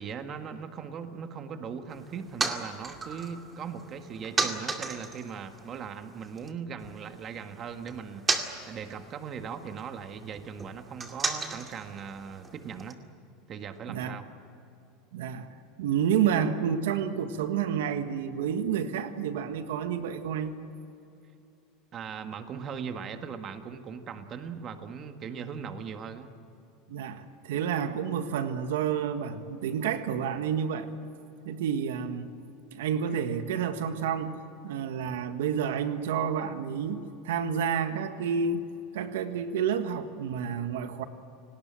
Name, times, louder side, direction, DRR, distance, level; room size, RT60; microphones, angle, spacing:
voice 1, 0.0-13.0 13.5-14.3 21.9-26.3, right 6 dB, 35° right, 7 dB, 1.7 m, -39 dB
sound 1, 1.9-6.5 6.8-12.9, right 4 dB, 20° right, 2.2 m, -36 dB
voice 2, 15.1-15.5 15.8-20.5 26.9-30.9 31.4-32.3 32.7-38.7 38.9-41.0, right 7 dB, 85° right, 9 dB, 1.5 m, -29 dB
28.5 x 19.0 x 7.7 m, 2.8 s
supercardioid pair, 130°, 0 cm